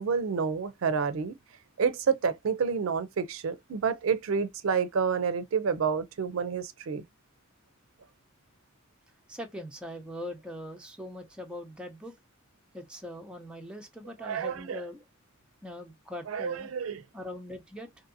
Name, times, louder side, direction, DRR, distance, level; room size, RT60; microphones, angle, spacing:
voice 1, 0.0-1.3 1.8-7.0 14.2-14.8 16.3-17.0, right 6 dB, 75° right, 0.4 m, -29 dB
voice 2, 9.3-12.1 12.7-15.0 15.6-16.7 17.1-17.9, left 1 dB, 5° right, 0.5 m, -41 dB
2.6 x 2.6 x 2.5 m
head